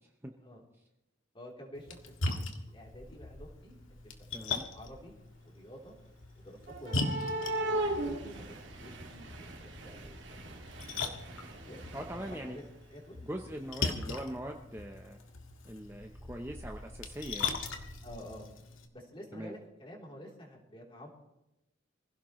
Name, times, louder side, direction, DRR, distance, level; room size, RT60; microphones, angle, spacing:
voice 1, 1.3-3.8 4.0-5.1 5.4-6.0 6.3-10.7 11.5-12.6 12.9-13.2 18.0-18.5 18.9-21.1, equal, 25° left, -2 dB, 3.4 m, -50 dB
Splash splatter, 1.7-18.9, left 3 dB, 80° left, 1.9 m, -40 dB
sound 1, 2.9-3.6 3.9-5.2 6.7-12.8 14.1-14.2 14.8-14.9 15.9-18.1, right 1 dB, 60° right, 2.4 m, -40 dB
voice 2, 4.3-4.6 11.9-12.6 13.2-15.2 15.6-17.6 19.3-19.5, right 1 dB, 10° right, 3 dB, 0.8 m, -41 dB
25.0 x 16.5 x 3.2 m, 0.91 s
head